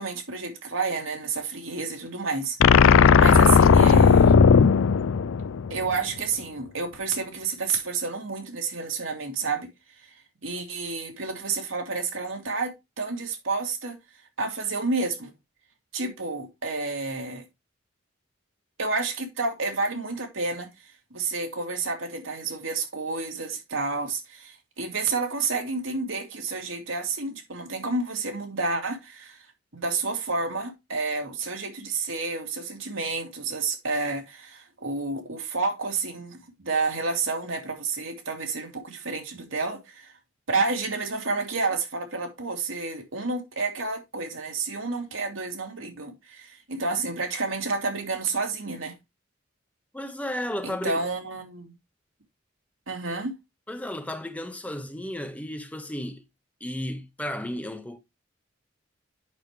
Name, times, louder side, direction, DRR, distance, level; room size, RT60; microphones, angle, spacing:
voice 1, 0.0-2.6 2.8-4.3 5.7-9.7 10.4-14.0 14.4-15.3 15.9-17.4 18.8-20.7 21.1-29.4 29.7-40.1 40.5-48.9 50.6-51.7 52.9-53.3, right 3 dB, 85° right, 2.5 m, -30 dB
sound 1, 2.6-5.9, left 6 dB, 85° left, 0.4 m, -16 dB
voice 2, 49.9-51.0 53.7-56.2 56.6-58.0, left 1 dB, 5° left, 0.9 m, -33 dB
8.7 x 6.4 x 3.1 m
head